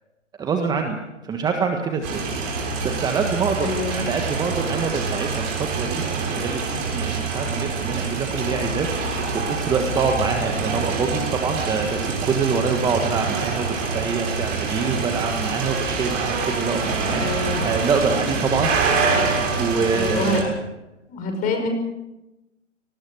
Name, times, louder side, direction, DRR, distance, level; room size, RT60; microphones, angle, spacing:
voice 1, 0.4-1.0 1.2-2.3 2.8-18.7 19.6-20.6, right 5 dB, 10° right, 4 dB, 1.5 m, -25 dB
sound 1, 2.0-20.4, right 4 dB, 30° right, 6.8 m, -26 dB
voice 2, 3.6-4.0 17.2-17.7 19.9-20.4 21.1-21.7, left 2 dB, 20° left, 4 dB, 5.6 m, -26 dB
29.0 x 20.0 x 6.4 m, 0.98 s
figure-of-eight pair, 130°, 37 cm